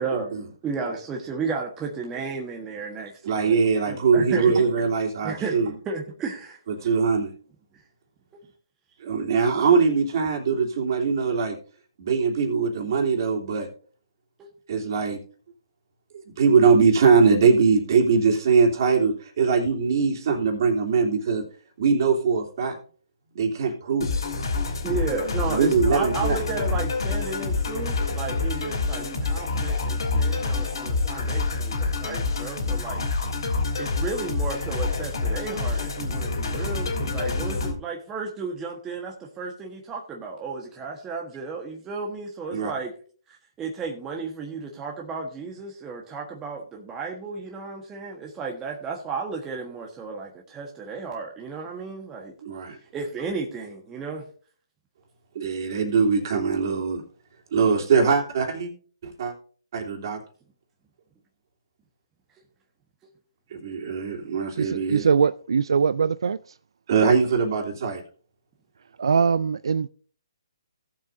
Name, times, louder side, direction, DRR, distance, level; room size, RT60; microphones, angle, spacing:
voice 1, 0.6-4.5 5.2-5.6 5.8-6.6 7.7-7.8 8.3-8.4 14.4-14.5 24.8-33.0 33.3-33.4 33.8-42.9 43.3-52.3 52.9-54.2, right 4 dB, 15° right, 1.3 m, -33 dB
voice 2, 3.2-5.7 6.7-7.3 9.0-11.6 12.0-13.7 14.7-15.2 16.4-21.4 21.8-22.8 23.3-24.1 25.5-26.4 28.9-29.0 42.5-42.7 52.4-52.8 55.3-57.0 57.5-58.7 59.0-59.3 59.7-60.2 63.5-65.0 66.9-68.0, right 5 dB, 50° right, 3.0 m, -21 dB
sound 1, 24.0-37.7, left 3 dB, 65° left, 3.3 m, -27 dB
voice 3, 64.6-66.4 69.0-69.9, right 6 dB, 70° right, 0.4 m, -22 dB
17.5 x 7.5 x 2.7 m
hypercardioid pair, 145°, 3 cm